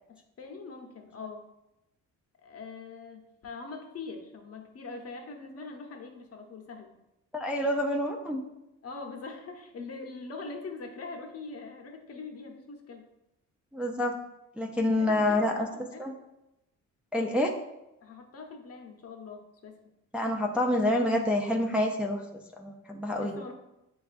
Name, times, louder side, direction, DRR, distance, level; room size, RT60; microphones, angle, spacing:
voice 1, 0.1-1.4 2.4-6.9 8.8-13.0 14.9-16.1 18.0-19.8 23.2-23.5, left 4 dB, 50° left, 3 dB, 0.8 m, -43 dB
voice 2, 7.3-8.4 13.7-14.2 14.6-15.7 16.0-16.1 17.1-17.5 20.1-23.4, left 1 dB, 5° right, 1 dB, 0.4 m, -27 dB
6.9 x 2.4 x 2.5 m, 0.90 s
cardioid pair, 90°, 30 cm